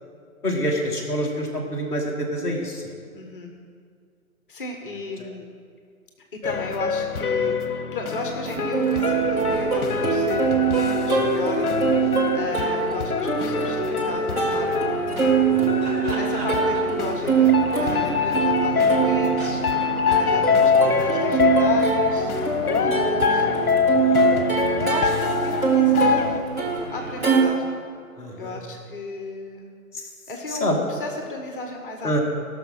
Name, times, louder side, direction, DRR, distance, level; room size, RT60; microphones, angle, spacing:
voice 1, 0.4-2.9 5.2-5.3 7.4-7.5 11.0-11.3 15.4-15.8 20.3-20.7 23.4-23.5 23.9-24.4 28.2-28.6 29.9-30.1 30.5-30.8 32.0-32.2, equal, 5° left, -8 dB, 1.3 m, -28 dB
voice 2, 3.1-3.5 4.5-5.5 6.4-15.2 16.1-23.5 24.8-26.6 26.9-27.9 28.4-29.7 30.3-32.1, left 3 dB, 35° left, 3 dB, 1.1 m, -34 dB
sound 1, 6.4-26.4, left 5 dB, 70° left, 0.9 m, -24 dB
Plucked string instrument, 8.4-27.4, right 6 dB, 10° right, 0.8 m, -23 dB
17.5 x 6.4 x 5.6 m, 2.2 s
figure-of-eight pair, 145°, 45 cm